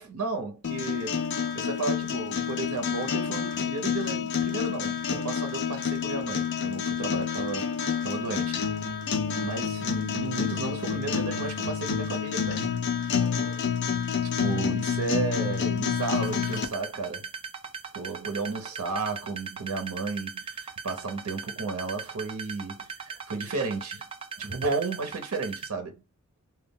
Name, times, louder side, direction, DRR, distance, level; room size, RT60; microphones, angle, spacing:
voice 1, 0.0-8.7 9.4-12.7 13.1-13.6 14.2-17.3 17.9-24.1 24.4-26.0, right 3 dB, 80° right, 0.6 m, -33 dB
sound 1, 0.6-16.7, left 7 dB, 55° left, 0.4 m, -29 dB
sound 2, 15.9-25.7, right 5 dB, 25° right, 0.3 m, -39 dB
2.2 x 2.0 x 3.6 m
head